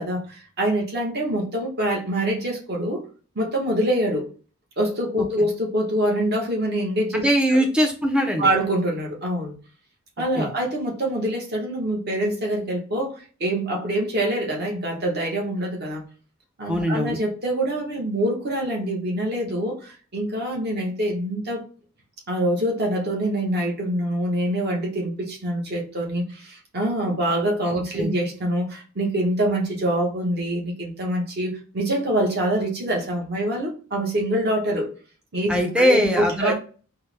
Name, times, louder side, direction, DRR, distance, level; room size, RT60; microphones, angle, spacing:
voice 1, 0.0-3.0 3.3-4.3 4.8-7.2 7.5-7.6 8.4-9.6 10.2-16.0 16.6-21.6 22.3-34.9 35.3-36.5, right 1 dB, 45° right, -1 dB, 0.9 m, -25 dB
voice 2, 7.1-8.5 10.4-10.5 16.7-17.2 28.0-28.1 35.5-36.5, equal, 5° right, 3 dB, 0.4 m, -21 dB
4.3 x 2.0 x 3.2 m, 0.39 s
head